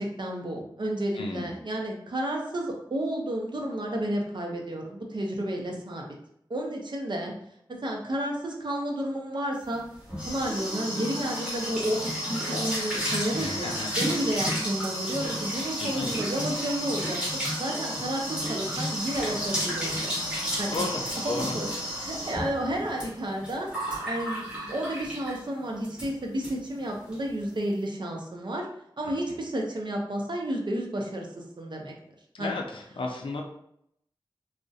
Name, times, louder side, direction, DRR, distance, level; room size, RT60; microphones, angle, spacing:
voice 1, 0.0-6.1 6.5-7.3 7.8-9.8 10.3-12.0 12.3-20.3 20.6-20.9 21.2-21.7 22.0-23.7 24.0-28.7 29.0-31.9 32.4-32.6, right 1 dB, 65° right, 0 dB, 0.5 m, -31 dB
voice 2, 1.1-1.5 13.4-13.9 15.8-16.1 20.7-21.6 29.3-29.4 32.3-33.4, left 3 dB, 85° left, 1 dB, 0.4 m, -33 dB
sound 1, 9.7-25.5 25.8-26.1 26.4-26.5 26.8-27.2, equal, 10° right, 1.1 m, -32 dB
2.3 x 2.1 x 2.6 m, 0.74 s
wide cardioid pair, 55°, 9 cm